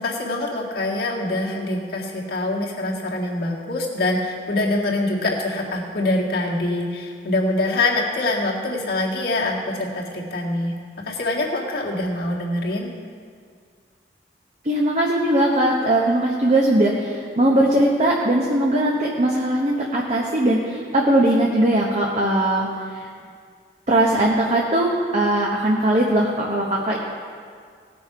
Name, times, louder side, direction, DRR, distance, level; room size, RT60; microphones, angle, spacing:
voice 1, 0.0-10.7 11.0-12.9, left 2 dB, 60° left, -3 dB, 1.8 m, -24 dB
voice 2, 14.6-22.7 22.9-23.1 23.9-27.0, right 1 dB, 40° right, -3 dB, 1.1 m, -20 dB
18.0 x 6.2 x 4.7 m, 2.1 s
head